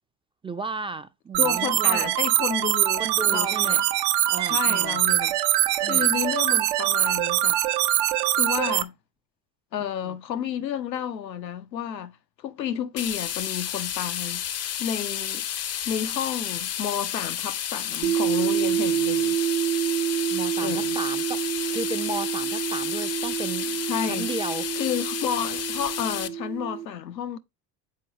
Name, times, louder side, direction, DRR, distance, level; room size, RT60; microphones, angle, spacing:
voice 1, 0.4-2.1 3.0-3.8 4.3-5.0 5.8-6.1 10.0-10.2 20.3-24.7, right 3 dB, 10° right, 0.5 m, -34 dB
sound 1, 1.3-8.8, right 14 dB, 55° right, 0.7 m, -23 dB
voice 2, 1.4-3.8 4.4-5.4 5.8-7.6 8.4-8.9 9.7-14.5 14.8-15.4 15.9-19.4 20.6-21.0 23.9-24.3 24.8-27.4, left 9 dB, 85° left, 0.7 m, -31 dB
sound 2, 13.0-26.3, left 10 dB, 30° left, 0.6 m, -31 dB
sound 3, 18.0-26.9, right 11 dB, 85° right, 0.8 m, -28 dB
7.5 x 4.4 x 2.8 m
figure-of-eight pair, 60°, 49 cm